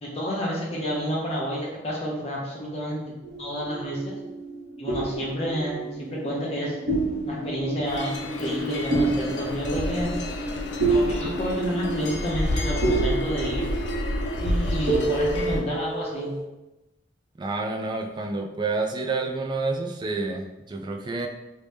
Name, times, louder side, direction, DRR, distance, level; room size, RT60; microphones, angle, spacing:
voice 1, 0.0-3.0 3.4-4.2 4.8-6.8 7.3-10.1 10.9-13.7 14.4-16.3, equal, 35° left, -4 dB, 0.7 m, -30 dB
sound 1, 3.2-4.3 4.9-6.6 6.9-16.4, right 2 dB, 85° right, 0.9 m, -29 dB
sound 2, 3.5-15.1, equal, 60° right, 0.7 m, -36 dB
sound 3, 7.9-15.6, left 1 dB, 75° left, 0.4 m, -30 dB
voice 2, 17.4-21.3, right 3 dB, 25° right, 3 dB, 0.4 m, -29 dB
3.2 x 2.7 x 3.4 m, 1.0 s
head